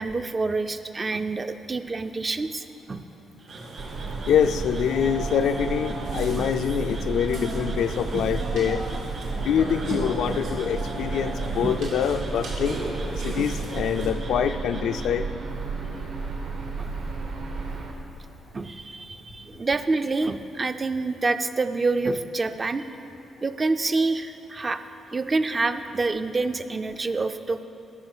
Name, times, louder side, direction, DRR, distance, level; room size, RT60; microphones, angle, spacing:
voice 1, 0.0-3.0 6.4-6.5 8.1-8.3 9.9-10.0 11.6-11.8 13.4-13.5 16.8-16.9 17.7-17.8 18.5-22.8 23.4-24.8 25.1-27.6, right 3 dB, 25° right, 10 dB, 0.4 m, -27 dB
Frog, 3.4-15.1, right 3 dB, 45° right, 1.0 m, -47 dB
Burping eructation, 3.5-14.1, right 1 dB, 85° right, 1.9 m, -36 dB
sound 1, 3.8-17.9, right 4 dB, 70° right, 1.3 m, -33 dB
voice 2, 4.3-8.9 9.4-12.8 13.2-15.3, left 8 dB, 80° left, 9 dB, 0.4 m, -25 dB
13.0 x 5.5 x 6.0 m, 3.0 s
cardioid pair, 130°, 0 cm